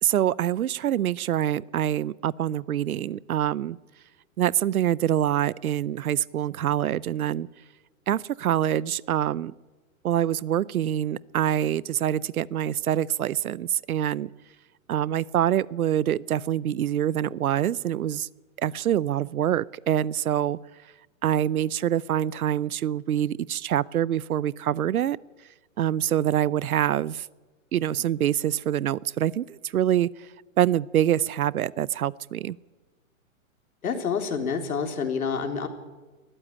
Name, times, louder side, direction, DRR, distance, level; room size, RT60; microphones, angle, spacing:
voice 1, 0.0-3.8 4.4-7.5 8.1-9.5 10.0-14.3 14.9-18.3 18.6-20.6 21.2-25.2 25.8-27.3 27.7-30.3 30.6-32.6, right 11 dB, 85° right, 23 dB, 0.8 m, -25 dB
voice 2, 33.8-35.7, left 6 dB, 85° left, 5 dB, 3.8 m, -28 dB
20.5 x 14.5 x 10.0 m, 1.2 s
hypercardioid pair, 180°, 42 cm